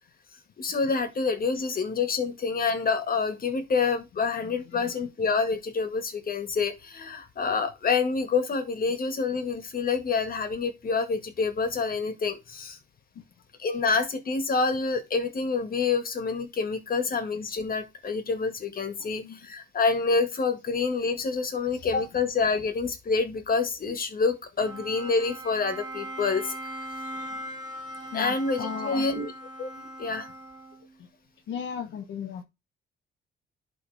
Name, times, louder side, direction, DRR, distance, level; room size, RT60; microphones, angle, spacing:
voice 1, 0.6-12.8 13.6-26.8 28.1-29.3 29.6-30.3, left 4 dB, 45° left, 1.9 m, -27 dB
voice 2, 4.4-4.9 13.1-13.2 19.0-19.4 21.7-21.9 27.3-27.4 28.1-29.1 31.0-31.1 31.5-32.4, left 7 dB, 70° left, 1.0 m, -37 dB
Bowed string instrument, 24.6-31.0, right 1 dB, 20° right, 2.6 m, -39 dB
11.5 x 3.9 x 3.4 m
cardioid pair, 90°, 20 cm